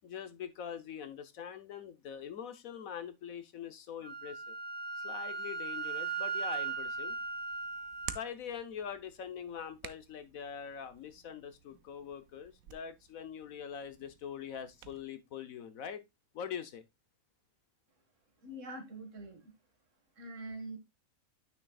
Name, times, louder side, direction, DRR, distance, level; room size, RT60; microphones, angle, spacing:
voice 1, 0.0-4.5 5.0-7.2 8.1-16.0 16.3-16.8, left 8 dB, 70° left, 1.3 m, -43 dB
Wind instrument woodwind instrument, 4.0-8.2, right 5 dB, 10° right, 0.5 m, -38 dB
Hands, 6.6-15.0, right 9 dB, 75° right, 1.1 m, -52 dB
voice 2, 18.4-19.5 20.2-20.8, right 1 dB, 60° right, 2.2 m, -44 dB
9.6 x 6.1 x 2.3 m
omnidirectional pair, 1.5 m